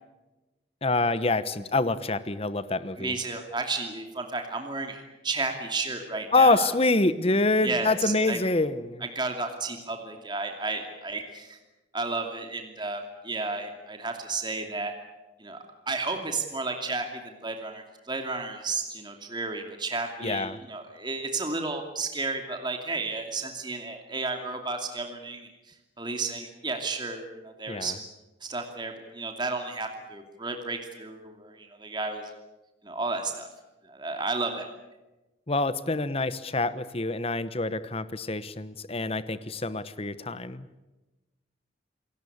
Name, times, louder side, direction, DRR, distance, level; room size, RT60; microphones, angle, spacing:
voice 1, 0.8-3.1 6.3-9.0 20.2-20.6 27.7-27.9 35.5-40.7, left 2 dB, 30° left, 14 dB, 1.1 m, -26 dB
voice 2, 3.0-6.7 7.6-8.4 9.0-11.6 11.9-14.9 15.4-15.6 15.9-25.5 26.0-27.9 28.4-32.3 32.8-33.5 33.9-34.7, right 3 dB, 25° right, 4 dB, 2.6 m, -32 dB
28.5 x 17.5 x 8.7 m, 1.1 s
head